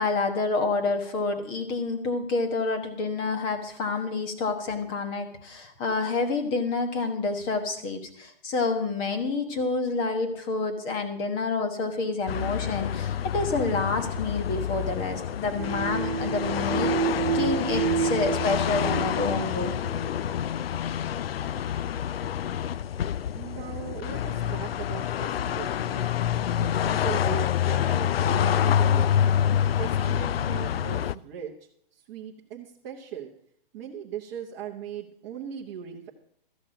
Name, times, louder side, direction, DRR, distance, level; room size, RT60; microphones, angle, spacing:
voice 1, 0.0-16.9 17.3-19.8, left 3 dB, 15° left, 5 dB, 1.2 m, -28 dB
sound 1, 12.3-31.2, left 9 dB, 85° left, 0.5 m, -27 dB
sound 2, 15.6-20.1, right 10 dB, 65° right, 0.4 m, -30 dB
voice 2, 23.3-26.1 26.6-29.2 29.8-31.5 31.9-33.3 33.7-36.1, right 9 dB, 20° right, -5 dB, 1.1 m, -39 dB
13.5 x 6.0 x 8.9 m, 0.65 s
hypercardioid pair, 170°, 29 cm